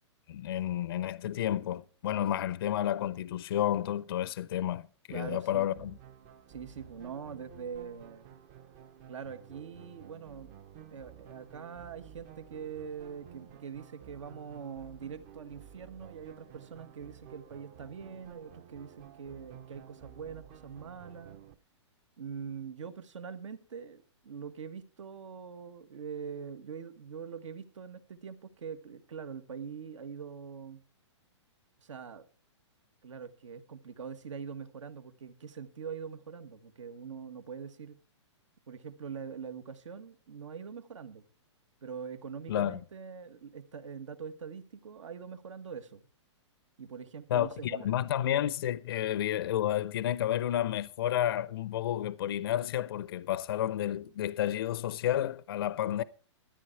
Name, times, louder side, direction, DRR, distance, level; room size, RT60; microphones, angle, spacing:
voice 1, 0.3-6.0 42.5-42.8 47.3-56.0, left 11 dB, 50° left, 0.4 m, -31 dB
voice 2, 5.1-5.9 6.5-8.3 9.1-10.6 10.9-21.4 22.2-30.8 31.8-32.3 33.0-38.0 38.7-41.3 41.8-46.0 46.8-47.9, right 6 dB, 85° right, 1.5 m, -43 dB
sound 1, 5.5-21.6, right 9 dB, 25° right, 0.5 m, -53 dB
13.0 x 10.0 x 4.6 m
hypercardioid pair, 165°, 15 cm